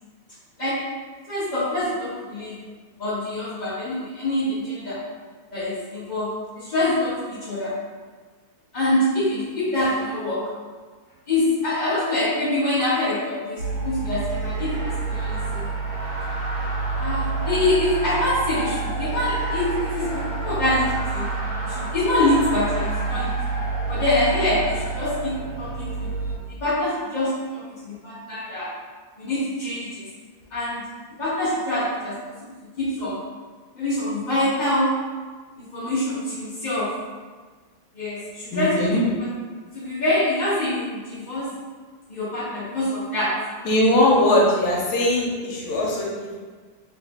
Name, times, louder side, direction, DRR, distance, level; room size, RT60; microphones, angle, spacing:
voice 1, 0.6-0.9 1.3-2.6 3.0-5.0 5.5-7.8 8.7-10.5 11.3-15.7 16.9-21.3 21.6-23.3 23.9-26.1 26.6-28.7 29.2-30.0 30.5-30.9 31.2-32.3 32.8-33.2 33.7-35.0 35.6-37.0 37.9-39.0 39.7-41.5 42.1-43.7, left 1 dB, 40° left, -12 dB, 0.6 m, -25 dB
sound 1, 13.6-26.4, right 3 dB, 85° right, 1.7 m, -28 dB
voice 2, 38.5-39.0 43.6-46.4, left 1 dB, 85° left, -3 dB, 1.5 m, -20 dB
3.3 x 3.1 x 3.5 m, 1.5 s
omnidirectional pair, 2.2 m